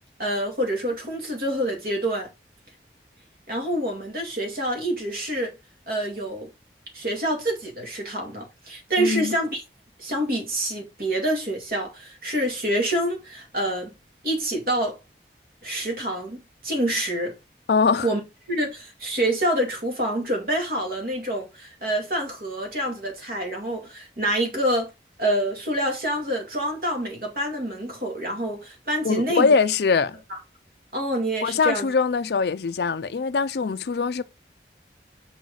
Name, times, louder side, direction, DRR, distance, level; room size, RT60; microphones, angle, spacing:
voice 1, 0.2-2.3 3.5-5.5 5.9-6.5 6.9-9.6 10.0-13.9 14.2-15.0 15.6-17.3 18.0-18.2 18.5-24.9 25.2-29.5 30.3-30.4 30.9-31.9, right 1 dB, 55° right, 2.4 m, -27 dB
voice 2, 9.0-9.3 17.7-18.1 29.0-30.2 31.4-34.2, left 5 dB, 70° left, 0.4 m, -22 dB
6.3 x 5.1 x 3.9 m
head